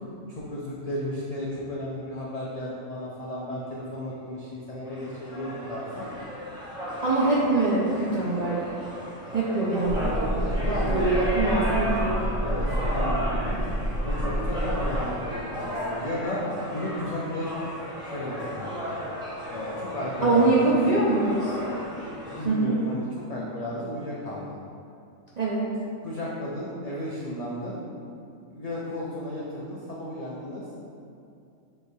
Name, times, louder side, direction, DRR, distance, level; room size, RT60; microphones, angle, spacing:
voice 1, 0.3-6.1 10.7-13.6 14.0-16.4 16.7-17.5 18.0-18.7 19.5-20.8 22.3-24.6 26.0-27.8 28.5-30.7, left 1 dB, 80° left, -5 dB, 0.3 m, -34 dB
sound 1, 4.9-22.5, equal, 5° right, 0.6 m, -34 dB
voice 2, 7.0-8.6 9.3-10.5 10.9-12.2 20.2-21.5 22.4-22.8 25.4-25.7, right 2 dB, 60° right, -7 dB, 0.4 m, -24 dB
sound 2, 9.8-15.0, right 1 dB, 55° left, 0.9 m, -29 dB
6.2 x 3.1 x 2.7 m, 2.5 s
omnidirectional pair, 1.4 m